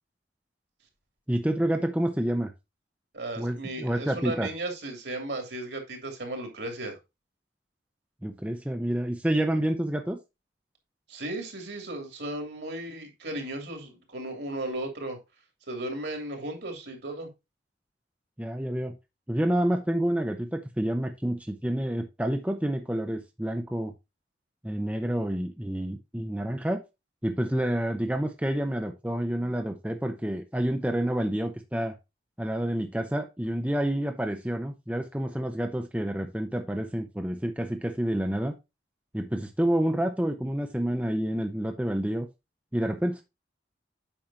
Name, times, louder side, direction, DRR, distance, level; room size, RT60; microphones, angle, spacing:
voice 1, 1.3-2.5 3.4-4.5 8.2-10.2 18.4-18.9 19.3-23.9 24.6-26.8 27.2-31.9 32.4-38.5 39.1-42.3 42.7-43.2, right 1 dB, 10° right, 0.7 m, -28 dB
voice 2, 3.1-7.0 11.1-15.2 15.7-17.3, right 1 dB, 65° right, 2.8 m, -35 dB
8.8 x 6.0 x 2.8 m
head